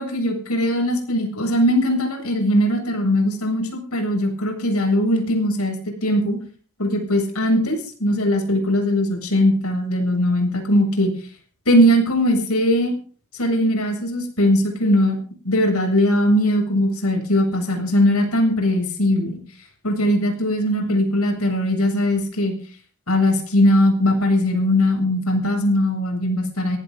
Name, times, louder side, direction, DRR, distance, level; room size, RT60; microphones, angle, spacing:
voice 1, 0.0-5.8 6.0-6.4 6.8-11.1 11.7-12.9 13.3-15.2 15.4-19.4 19.8-22.5 23.1-26.8, left 1 dB, 80° left, 3 dB, 7.6 m, -20 dB
19.5 x 18.0 x 4.0 m, 0.42 s
head